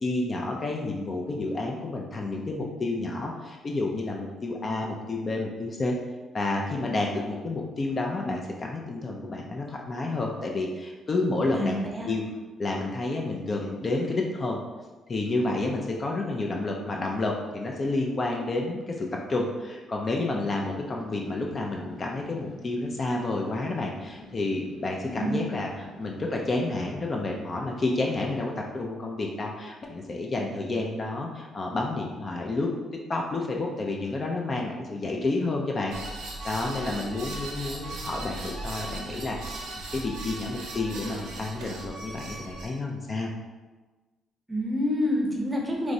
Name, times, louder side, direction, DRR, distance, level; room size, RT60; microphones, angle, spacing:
voice 1, 0.0-5.9 6.3-11.8 12.1-12.2 12.6-14.6 15.1-32.7 33.1-35.9 36.4-43.3, left 2 dB, 40° left, 0 dB, 0.4 m, -30 dB
voice 2, 11.5-12.1 25.0-25.6 44.5-45.9, left 1 dB, 10° right, -1 dB, 0.7 m, -28 dB
sound 1, 20.4-26.8, left 2 dB, 80° left, 0.7 m, -47 dB
sound 2, 35.9-42.7, right 2 dB, 90° right, 0.7 m, -38 dB
4.5 x 2.0 x 2.6 m, 1.3 s
cardioid pair, 90°, 0 cm